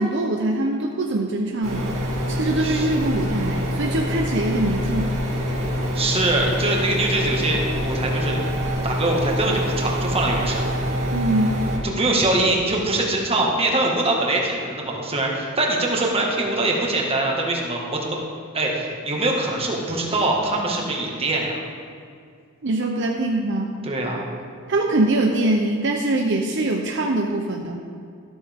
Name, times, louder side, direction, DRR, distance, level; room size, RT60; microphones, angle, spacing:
voice 1, 0.0-1.9 2.3-5.1 11.1-11.6 22.6-23.7 24.7-27.8, right 2 dB, 60° right, 2 dB, 0.8 m, -23 dB
sound 1, 1.6-11.8, equal, 85° right, 2.7 m, -25 dB
voice 2, 2.6-2.9 5.9-8.4 8.8-10.7 11.8-18.2 18.5-21.5 23.8-24.2, right 2 dB, 30° right, -1 dB, 1.8 m, -23 dB
13.0 x 13.0 x 3.7 m, 2.3 s
head